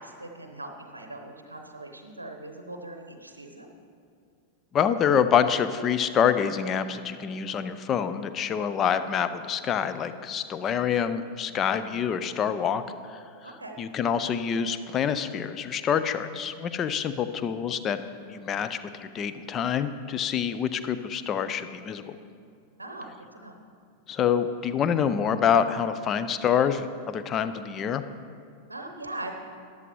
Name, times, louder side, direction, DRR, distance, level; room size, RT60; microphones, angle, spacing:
voice 1, 0.0-3.7 11.5-11.7 13.4-13.8 22.8-23.6 28.7-29.4, right 2 dB, 80° right, 4 dB, 0.7 m, -41 dB
voice 2, 4.7-12.8 13.1-13.2 13.8-18.0 18.3-22.2 24.1-28.0, left 8 dB, 30° left, 11 dB, 0.5 m, -26 dB
13.5 x 10.5 x 3.1 m, 2.4 s
figure-of-eight pair, 90°, 0 cm